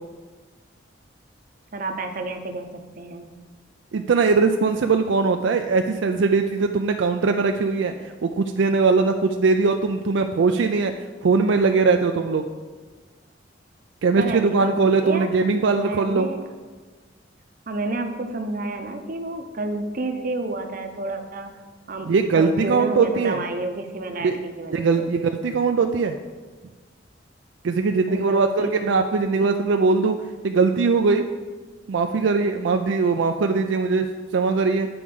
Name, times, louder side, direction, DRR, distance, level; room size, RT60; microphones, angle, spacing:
voice 1, 1.7-3.3 14.2-15.3 15.8-16.5 17.7-21.5 21.9-25.1 28.1-28.7, right 2 dB, 45° right, 6 dB, 0.7 m, -30 dB
voice 2, 3.9-7.9 8.2-12.4 14.0-16.3 22.1-23.4 24.2-24.4 24.7-26.2 27.6-30.2 30.4-31.2 31.9-34.9, right 4 dB, 70° right, 6 dB, 0.4 m, -20 dB
8.5 x 4.8 x 5.4 m, 1.4 s
head